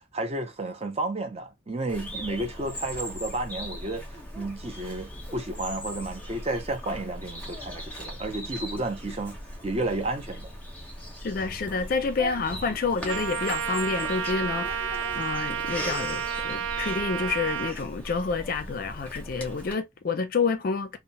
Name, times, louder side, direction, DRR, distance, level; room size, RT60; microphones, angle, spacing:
voice 1, 0.1-4.0 4.3-9.4 9.6-10.5, right 2 dB, 30° right, 0.6 m, -32 dB
Bird vocalization bird call bird song, 1.9-19.7, equal, 10° left, 0.7 m, -39 dB
voice 2, 11.2-21.0, left 4 dB, 45° left, 0.4 m, -29 dB
Trumpet, 13.1-17.8, right 8 dB, 80° right, 0.3 m, -31 dB
2.8 x 2.0 x 2.7 m
head